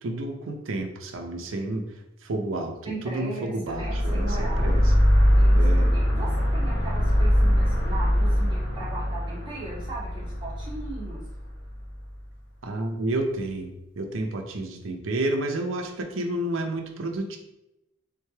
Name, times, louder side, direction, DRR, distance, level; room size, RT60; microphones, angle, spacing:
voice 1, 0.0-1.9 2.2-4.8 5.5-6.0 12.6-17.4, right 2 dB, 80° right, 4 dB, 0.6 m, -30 dB
voice 2, 2.8-4.8 5.4-11.2, right 2 dB, 25° right, -7 dB, 1.4 m, -38 dB
sound 1, 3.7-12.0, equal, 55° left, 1.0 m, -22 dB
3.6 x 3.3 x 3.2 m, 0.89 s
head